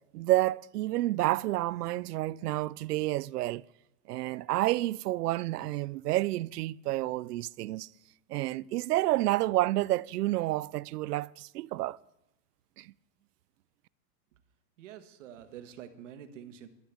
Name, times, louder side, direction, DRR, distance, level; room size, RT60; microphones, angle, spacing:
voice 1, 0.1-3.6 4.1-7.9 8.3-12.0 12.8-12.9, right 17 dB, 70° right, 0.5 m, -29 dB
voice 2, 14.8-16.7, right 9 dB, 50° right, 1.6 m, -47 dB
12.5 x 10.5 x 8.7 m
supercardioid pair, 175°, 49 cm